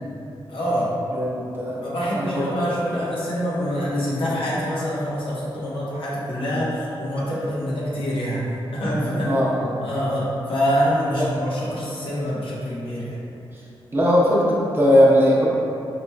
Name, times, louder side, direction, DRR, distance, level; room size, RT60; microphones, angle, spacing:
voice 1, 0.5-0.9 1.8-9.4 9.8-13.2, equal, 70° left, -7 dB, 1.0 m, -25 dB
voice 2, 1.1-2.4 9.2-9.7 11.2-11.3 13.9-15.5, equal, 25° right, -6 dB, 0.8 m, -19 dB
4.9 x 3.0 x 2.2 m, 2.7 s
cardioid pair, 90°, 9 cm